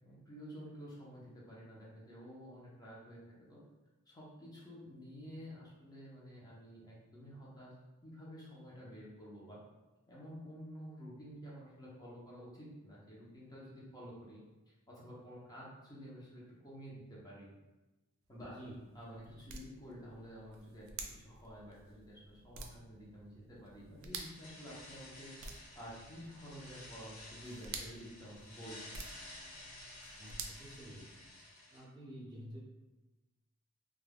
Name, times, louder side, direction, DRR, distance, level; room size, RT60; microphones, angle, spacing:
voice 1, 0.0-3.6 4.1-7.7 8.0-9.6 10.1-14.4 14.9-17.5 18.3-18.6 18.9-20.9 21.2-25.3 25.7-29.0, equal, 20° left, -6 dB, 0.6 m, -50 dB
sound 1, 18.2-31.5, right 4 dB, 65° right, 0.4 m, -51 dB
voice 2, 18.4-18.8 30.2-31.3 31.7-32.6, right 1 dB, 20° right, -5 dB, 0.6 m, -50 dB
sound 2, 24.1-31.8, left 1 dB, 70° left, 0.8 m, -53 dB
2.3 x 2.2 x 3.4 m, 1.1 s
head